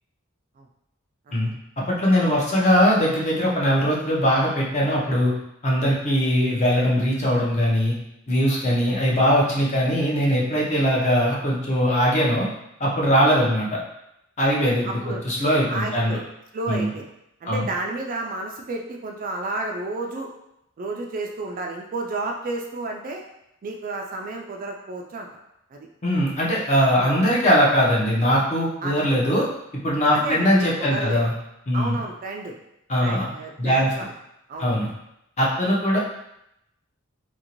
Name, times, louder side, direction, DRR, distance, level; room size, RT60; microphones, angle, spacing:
voice 1, 1.9-5.3 5.6-7.9 8.3-12.5 12.8-13.8 14.4-16.2 16.7-16.9 17.4-17.7 26.0-29.4 29.8-31.3 31.7-32.0 32.9-33.3 33.6-33.9 34.6-34.9 35.4-36.0, equal, 35° left, -4 dB, 0.7 m, -21 dB
voice 2, 14.8-15.2 15.7-16.2 16.5-17.1 17.4-20.3 20.8-23.2 23.6-25.3 25.7-25.9 27.0-27.2 28.8-29.1 30.1-31.3 31.7-32.5 33.0-34.1 34.5-34.7, right 2 dB, 40° right, 1 dB, 0.3 m, -31 dB
2.9 x 2.6 x 2.9 m, 0.83 s
head